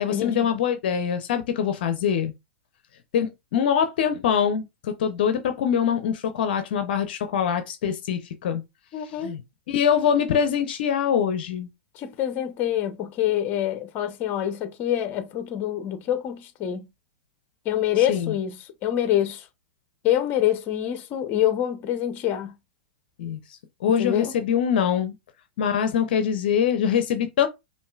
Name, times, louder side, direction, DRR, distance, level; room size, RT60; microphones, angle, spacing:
voice 1, 0.0-2.3 3.1-8.6 9.0-9.4 9.7-11.7 18.0-18.3 23.2-25.1 25.6-27.5, left 8 dB, 65° left, 0.6 m, -24 dB
voice 2, 8.9-9.3 11.9-16.9 17.6-19.4 20.0-22.5 24.0-24.3, left 11 dB, 40° left, 0.9 m, -26 dB
5.3 x 2.6 x 2.4 m
hypercardioid pair, 110°, 6 cm